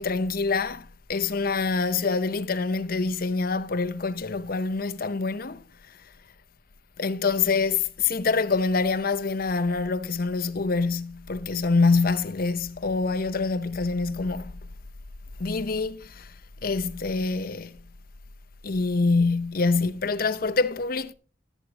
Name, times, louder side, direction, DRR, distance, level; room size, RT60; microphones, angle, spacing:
voice 1, 0.0-5.6 7.0-14.5 15.4-16.3 16.6-17.8 18.6-21.1, left 4 dB, 55° left, 0.8 m, -25 dB
13.5 x 8.2 x 3.7 m
head